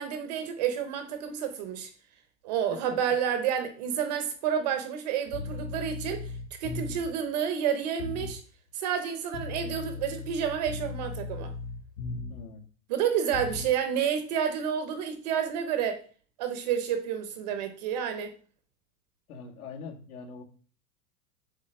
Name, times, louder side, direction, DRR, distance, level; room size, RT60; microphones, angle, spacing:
voice 1, 0.0-1.9 2.4-6.3 6.6-8.4 8.7-11.5 12.9-16.0 16.4-18.3, right 8 dB, 25° right, 0.7 m, -30 dB
sound 1, 5.3-7.2 8.0-8.4 9.3-12.5 13.3-13.7, left 4 dB, 55° left, 1.5 m, -37 dB
voice 2, 12.3-12.6 19.3-20.4, left 5 dB, 70° left, 2.4 m, -43 dB
8.2 x 3.7 x 6.3 m
supercardioid pair, 170°, 46 cm